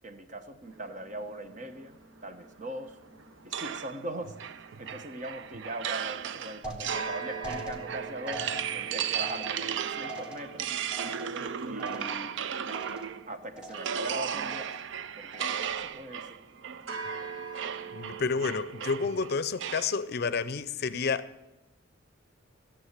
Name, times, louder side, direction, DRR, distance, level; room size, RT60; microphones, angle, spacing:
voice 1, 0.0-3.0 3.4-8.4 8.7-10.7 11.6-12.4 13.3-14.7 15.2-16.4, right 1 dB, 40° right, 8 dB, 0.9 m, -40 dB
sound 1, 0.6-19.3, right 5 dB, 90° right, 1.0 m, -45 dB
sound 2, 3.5-13.3 13.7-20.0, right 8 dB, 65° right, 0.4 m, -36 dB
sound 3, 6.6-12.4 12.7-13.3 13.6-14.1 14.4-15.0 15.3-15.9, right 1 dB, 5° right, 1.2 m, -44 dB
voice 2, 17.9-21.5, left 5 dB, 55° left, 15 dB, 0.5 m, -30 dB
14.5 x 7.0 x 7.4 m, 1.0 s
head